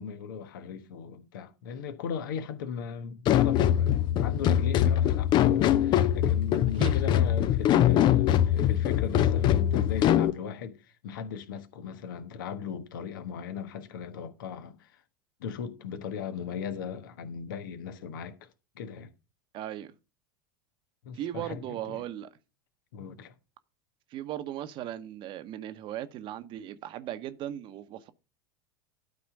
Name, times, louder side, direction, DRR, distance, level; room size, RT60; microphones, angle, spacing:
voice 1, 0.0-15.0 15.4-18.5 18.7-19.1 21.0-22.0 22.9-23.3, left 7 dB, 70° left, 1.3 m, -38 dB
sound 1, 3.3-10.3, left 11 dB, 40° left, 0.6 m, -23 dB
voice 2, 19.5-19.9 21.1-22.3 24.1-28.1, right 11 dB, 45° right, 1.0 m, -37 dB
12.0 x 4.2 x 5.3 m
hypercardioid pair, 80°, 12 cm